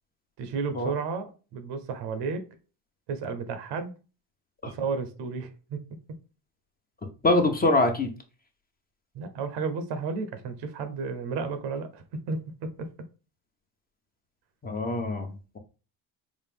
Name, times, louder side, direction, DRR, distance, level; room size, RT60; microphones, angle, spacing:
voice 1, 0.4-2.4 3.1-3.9 4.7-5.8 9.1-12.9, right 4 dB, 90° right, 9 dB, 0.8 m, -32 dB
voice 2, 7.2-8.1 14.6-15.6, left 2 dB, 20° left, 4 dB, 0.8 m, -24 dB
4.1 x 2.5 x 3.4 m, 0.34 s
cardioid pair, 105°, 40 cm